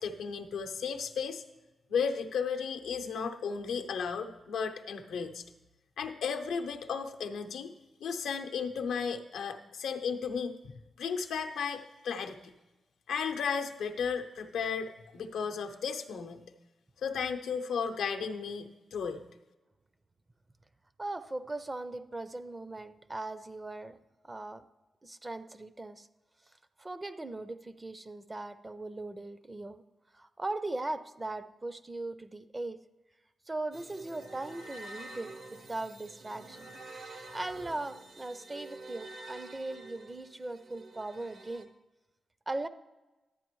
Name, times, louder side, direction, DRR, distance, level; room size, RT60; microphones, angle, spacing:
voice 1, 0.0-1.4 1.9-5.4 6.0-7.7 8.0-10.6 11.0-12.5 13.1-16.5 17.0-19.2, left 6 dB, 90° left, 5 dB, 0.6 m, -34 dB
voice 2, 21.0-24.0 24.3-24.6 25.0-26.1 26.8-29.8 30.2-32.8 33.5-36.7 37.3-41.7 42.5-42.7, right 2 dB, 25° right, 12 dB, 0.5 m, -39 dB
sound 1, 33.7-41.6, right 2 dB, 70° right, 0.8 m, -48 dB
11.5 x 8.7 x 3.1 m, 1.1 s
cardioid pair, 60°, 0 cm